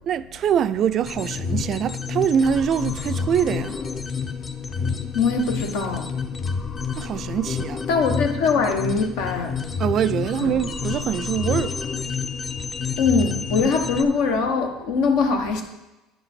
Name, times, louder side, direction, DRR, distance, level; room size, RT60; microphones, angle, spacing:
voice 1, 0.1-3.8 7.0-7.8 9.8-11.7 13.9-14.1, right 8 dB, 50° right, 0.3 m, -24 dB
sound 1, 1.0-14.0, left 5 dB, 30° left, 0.7 m, -29 dB
voice 2, 5.1-6.1 7.9-9.6 10.3-10.5 13.0-15.6, left 4 dB, 75° left, 1.1 m, -22 dB
9.1 x 5.1 x 4.4 m
supercardioid pair, 100°, 0 cm